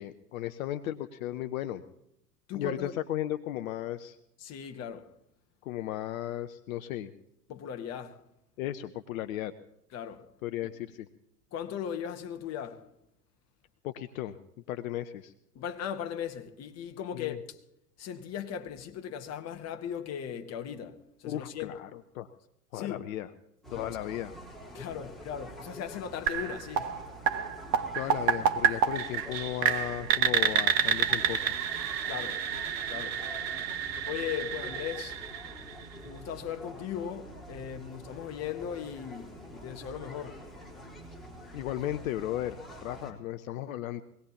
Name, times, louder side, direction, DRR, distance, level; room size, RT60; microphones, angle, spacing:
voice 1, 0.0-1.8 2.5-4.2 5.6-7.1 8.6-9.5 10.4-11.1 13.8-14.4 14.7-15.3 17.1-17.4 21.2-22.3 22.7-23.3 23.7-24.4 27.9-31.6 41.5-44.0, left 13 dB, 60° left, 0.8 m, -35 dB
voice 2, 2.5-2.9 4.4-5.1 7.5-8.2 9.9-10.3 10.6-10.7 11.5-12.9 15.5-17.6 18.0-21.8 22.7-23.1 24.7-26.9 32.1-32.4 32.9-33.2 34.0-35.2 36.0-40.4, left 8 dB, 30° left, 1.4 m, -38 dB
sound 1, 23.6-43.1, equal, ahead, 3.8 m, -46 dB
sound 2, 26.3-36.1, right 8 dB, 55° right, 1.6 m, -29 dB
23.5 x 18.5 x 2.9 m
hypercardioid pair, 95°, 48 cm